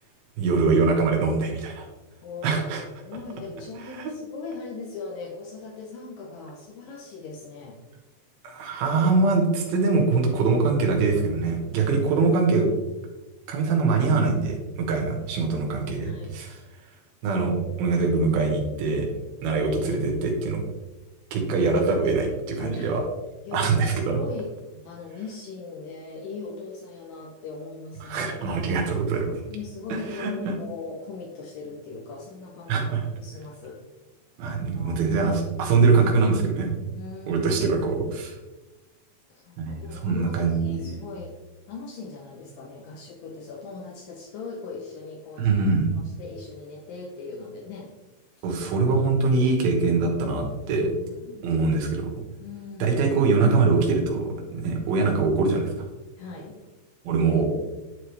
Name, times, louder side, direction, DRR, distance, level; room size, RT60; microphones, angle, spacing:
voice 1, 0.4-1.9 2.4-2.8 3.9-4.1 8.4-12.7 13.5-16.6 17.2-19.1 19.4-20.6 21.3-23.0 23.5-24.2 28.0-29.4 29.9-30.5 32.7-33.1 34.4-36.8 37.3-38.4 39.6-41.0 45.4-45.9 48.4-50.9 51.4-52.1 52.8-55.7 57.0-57.5, right 4 dB, 85° right, 2 dB, 3.2 m, -23 dB
voice 2, 2.2-2.6 3.0-7.8 16.0-16.4 22.6-22.9 23.4-24.5 24.9-28.4 29.5-32.9 33.2-33.8 34.7-35.2 36.9-37.4 39.3-41.4 41.7-45.6 46.2-47.9 48.4-48.5 50.7-51.5 52.4-53.0 56.2-56.6, left 4 dB, 75° left, 0 dB, 2.4 m, -39 dB
10.5 x 4.7 x 3.3 m, 1.1 s
omnidirectional pair, 4.2 m